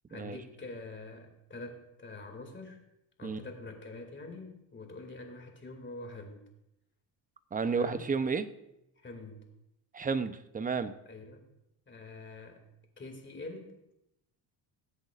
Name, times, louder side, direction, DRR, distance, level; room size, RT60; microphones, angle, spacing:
voice 1, 0.1-2.8 3.2-6.4 7.7-8.0 9.0-9.5 11.1-11.5 11.9-12.6 13.0-13.8, left 2 dB, 25° left, 3 dB, 2.4 m, -45 dB
voice 2, 7.5-8.5 9.9-10.9, right 5 dB, 20° right, 11 dB, 0.7 m, -31 dB
21.0 x 8.1 x 2.5 m, 0.86 s
cardioid pair, 100°, 46 cm